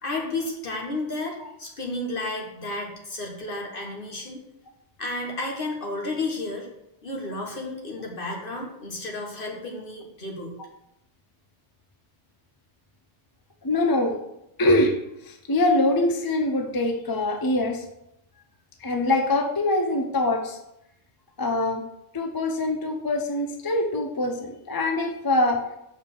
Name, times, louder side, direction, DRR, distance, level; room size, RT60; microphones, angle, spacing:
voice 1, 0.0-4.4 5.0-6.7 7.0-10.6, left 2 dB, 50° left, 0 dB, 1.6 m, -32 dB
voice 2, 13.6-14.2 14.6-14.9 15.3-17.8 18.8-20.6 21.4-21.8 22.1-25.6, left 2 dB, 25° left, 4 dB, 0.5 m, -23 dB
6.5 x 5.0 x 5.4 m, 0.83 s
omnidirectional pair, 1.2 m